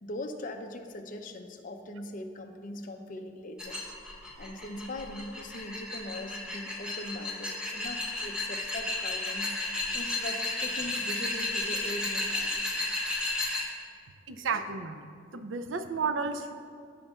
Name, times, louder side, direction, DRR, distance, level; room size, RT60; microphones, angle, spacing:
voice 1, 0.0-3.8 4.4-9.5 9.9-12.8, left 1 dB, 45° left, 4 dB, 0.6 m, -40 dB
sound 1, 3.6-13.6, left 2 dB, 5° right, 1.2 m, -33 dB
voice 2, 14.3-16.5, right 5 dB, 85° right, 8 dB, 0.5 m, -33 dB
15.0 x 5.3 x 2.4 m, 2.3 s
head